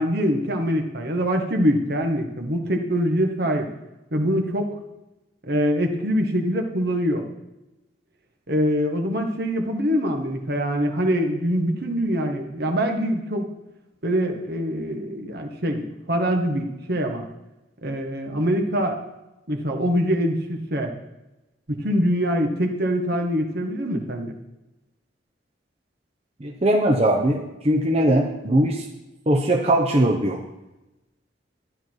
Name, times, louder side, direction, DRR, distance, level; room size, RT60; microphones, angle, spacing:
voice 1, 0.0-3.7 4.1-4.7 5.5-7.2 8.5-13.5 14.0-17.3 17.8-19.0 19.5-20.9 21.7-24.3, equal, 60° right, 3 dB, 1.6 m, -24 dB
voice 2, 26.4-27.4 27.6-28.8 29.3-30.4, right 1 dB, 35° right, 0 dB, 1.1 m, -20 dB
12.5 x 10.5 x 4.7 m, 0.98 s
head